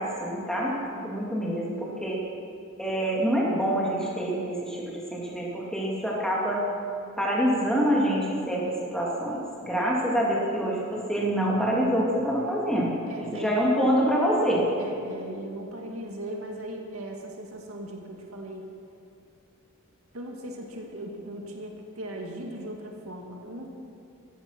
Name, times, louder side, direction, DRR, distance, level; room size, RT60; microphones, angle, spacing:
voice 1, 0.0-2.2 2.8-6.7 7.2-8.6 8.9-12.9 13.3-14.7, equal, 5° left, -4 dB, 3.0 m, -26 dB
voice 2, 10.0-10.5 13.1-13.7 14.8-18.7 20.1-23.7, right 1 dB, 85° right, 1 dB, 2.2 m, -38 dB
15.0 x 14.0 x 6.1 m, 2.5 s
head